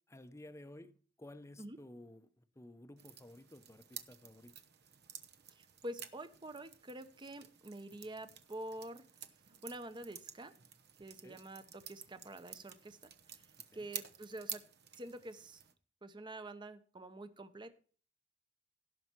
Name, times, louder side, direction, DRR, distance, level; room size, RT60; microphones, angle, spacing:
voice 1, 0.1-0.9 1.2-4.5 11.2-11.4 13.7-13.9, left 1 dB, 15° left, 0.7 m, -54 dB
sound 1, 3.0-15.7, right 9 dB, 60° right, 0.9 m, -51 dB
voice 2, 5.5-9.1 9.6-10.5 11.0-14.6 14.9-15.6 16.0-17.8, right 1 dB, 25° right, 0.9 m, -47 dB
17.0 x 5.7 x 4.6 m
head